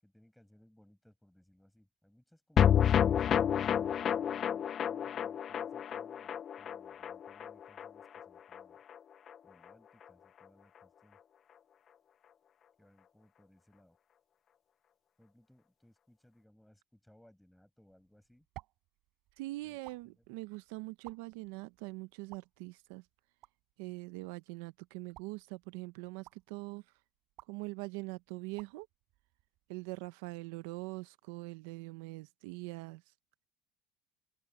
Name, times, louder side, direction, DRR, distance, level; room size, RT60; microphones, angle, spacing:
voice 1, 0.0-4.3 4.8-8.8 9.4-11.2 12.8-14.0 15.2-18.5 19.6-20.4, left 1 dB, ahead, 7.6 m, -65 dB
sound 1, 2.6-9.0 9.3-9.4 9.6-9.7, left 9 dB, 35° left, 0.4 m, -30 dB
sound 2, 17.9-30.1, right 17 dB, 60° right, 6.7 m, -59 dB
voice 2, 19.4-23.0 23.8-26.8 27.5-28.9 29.7-33.0, right 22 dB, 85° right, 0.7 m, -43 dB
cardioid pair, 140°, 0 cm